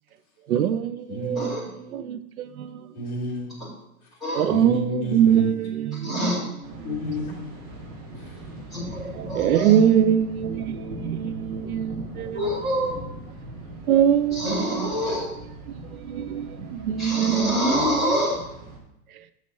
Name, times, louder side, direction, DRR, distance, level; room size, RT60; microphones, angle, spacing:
voice 1, 0.5-1.6 1.9-2.7 4.3-6.4 9.1-12.4 13.9-15.0 15.9-17.5, right 9 dB, 75° right, 0.7 m, -23 dB
voice 2, 1.1-2.0 2.9-3.8 4.0-4.1 4.5-7.7 8.2-8.4, left 1 dB, 25° left, 2.4 m, -33 dB
voice 3, 6.0-6.4 8.7-9.7 12.3-12.9 14.3-15.3 17.0-18.4, equal, ahead, 2.4 m, -26 dB
Thunder, 6.6-18.8, right 1 dB, 35° right, 1.6 m, -40 dB
6.6 x 6.3 x 4.1 m
hypercardioid pair, 175°, 44 cm